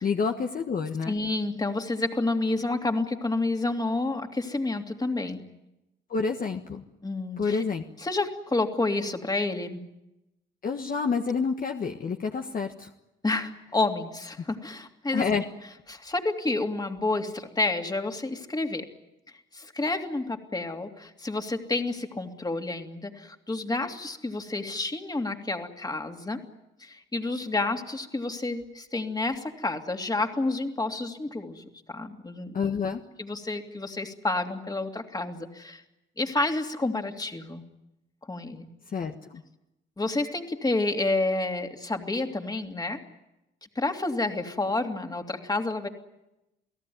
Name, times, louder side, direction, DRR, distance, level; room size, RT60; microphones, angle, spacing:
voice 1, 0.0-1.1 6.1-6.8 7.4-7.8 10.6-12.9 15.1-15.4 32.5-33.0 38.9-39.4, left 5 dB, 45° left, 3 dB, 1.5 m, -28 dB
voice 2, 1.1-5.4 7.0-7.6 8.0-9.8 13.2-15.2 15.9-18.9 19.5-26.4 26.8-32.5 33.2-35.8 36.2-37.6 38.3-38.7 40.0-43.0 43.7-45.9, left 2 dB, 20° left, 4 dB, 2.8 m, -29 dB
29.5 x 17.5 x 9.5 m, 0.94 s
cardioid pair, 90°, 20 cm